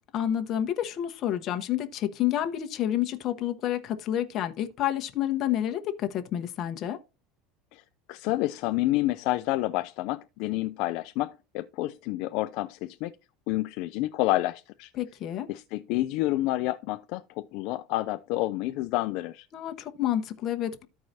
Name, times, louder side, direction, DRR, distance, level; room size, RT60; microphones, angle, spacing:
voice 1, 0.1-7.0 15.0-15.5 19.5-20.9, left 11 dB, 35° left, 1.0 m, -29 dB
voice 2, 8.1-13.1 13.5-14.9 15.5-19.5, left 17 dB, 55° left, 0.4 m, -29 dB
14.0 x 4.7 x 2.7 m
cardioid pair, 160°, 0 cm